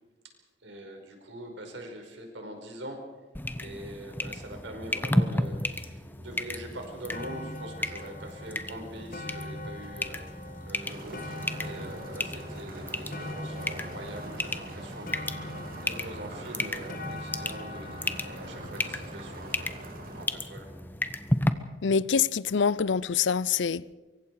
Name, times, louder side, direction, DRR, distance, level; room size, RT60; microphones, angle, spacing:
voice 1, 0.6-3.0 3.6-15.3 15.7-19.7 20.2-20.7, right 1 dB, 75° right, 5.3 m, -43 dB
sound 1, 3.3-21.5, left 1 dB, 10° left, 1.0 m, -34 dB
sound 2, 6.4-6.5 6.8-20.0 20.8-20.9, left 1 dB, 50° left, 1.6 m, -43 dB
sound 3, 10.8-20.3, right 1 dB, 50° right, 3.1 m, -44 dB
voice 2, 21.8-23.9, left 6 dB, 70° left, 0.6 m, -25 dB
24.5 x 24.0 x 4.9 m
head